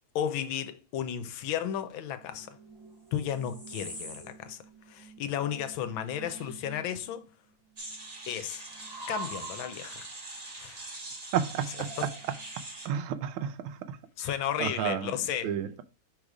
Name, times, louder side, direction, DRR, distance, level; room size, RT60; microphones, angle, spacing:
voice 1, 0.1-2.6 3.1-4.6 4.9-7.3 8.3-8.6 9.1-10.1 10.6-10.9 11.7-12.1 14.2-15.6, left 9 dB, 80° left, 1.4 m, -34 dB
sound 1, 1.7-7.3 7.5-9.9 11.6-12.6, right 3 dB, 10° right, 3.3 m, -46 dB
sound 2, 7.8-12.9, right 2 dB, 30° right, 0.7 m, -43 dB
voice 2, 11.3-11.9 12.8-13.5 14.6-15.1 15.4-15.8, right 9 dB, 85° right, 1.5 m, -30 dB
4.8 x 4.1 x 4.9 m
omnidirectional pair, 2.2 m